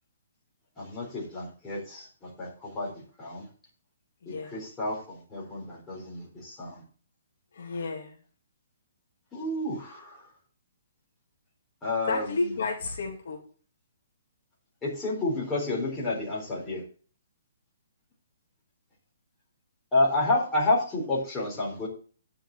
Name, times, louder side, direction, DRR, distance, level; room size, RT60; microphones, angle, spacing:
voice 1, 0.8-2.9 3.2-3.4 4.3-6.8 9.3-10.3 11.8-12.3 14.8-16.8 19.9-21.9, left 2 dB, 10° left, -5 dB, 3.8 m, -30 dB
voice 2, 4.2-4.5 7.5-8.2 12.1-13.4, left 3 dB, 55° left, 1 dB, 2.7 m, -32 dB
9.8 x 5.8 x 6.5 m, 0.39 s
hypercardioid pair, 170°, 0 cm